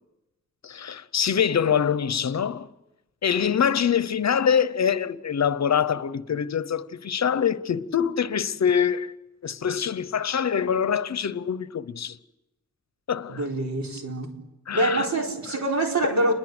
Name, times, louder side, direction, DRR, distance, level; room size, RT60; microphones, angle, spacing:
voice 1, 0.6-2.7 3.2-9.1 9.4-12.2 13.1-13.5 14.7-15.1, left 7 dB, 65° left, 0.9 m, -24 dB
voice 2, 13.3-14.3 14.7-16.3, right 2 dB, 65° right, 4.3 m, -25 dB
29.0 x 22.0 x 8.0 m
wide cardioid pair, 140°, 30 cm